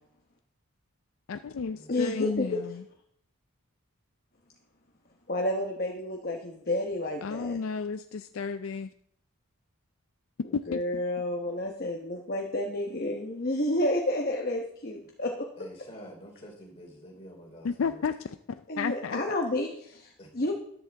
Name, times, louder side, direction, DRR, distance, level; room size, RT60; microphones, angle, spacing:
voice 1, 1.3-2.8 7.2-8.9 10.5-11.0 17.6-18.2 18.5-19.2, left 5 dB, 65° left, 10 dB, 0.4 m, -32 dB
voice 2, 1.9-2.5 5.3-7.6 10.7-15.5 18.7-20.5, left 1 dB, 40° left, 1 dB, 1.0 m, -30 dB
voice 3, 15.6-18.0 20.2-20.3, equal, 25° left, -2 dB, 3.5 m, -47 dB
13.5 x 10.5 x 3.5 m, 0.70 s
head